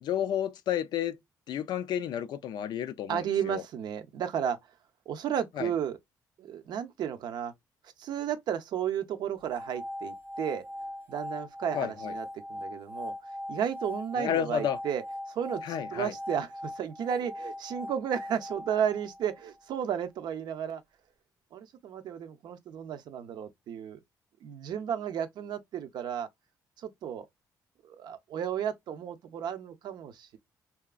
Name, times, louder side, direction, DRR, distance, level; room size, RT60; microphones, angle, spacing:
voice 1, 0.0-1.2 1.5-3.6 5.6-5.7 11.7-12.1 14.2-14.8 15.6-16.1, left 9 dB, 75° left, 0.3 m, -31 dB
voice 2, 3.1-4.6 5.1-6.0 6.4-7.5 8.0-10.6 11.1-13.1 13.5-20.8 21.5-24.0 24.4-26.3 26.8-27.3 27.8-30.4, right 8 dB, 75° right, 0.4 m, -33 dB
sound 1, 9.4-19.6, left 1 dB, 25° right, 0.7 m, -40 dB
2.8 x 2.4 x 2.3 m
cardioid pair, 90°, 7 cm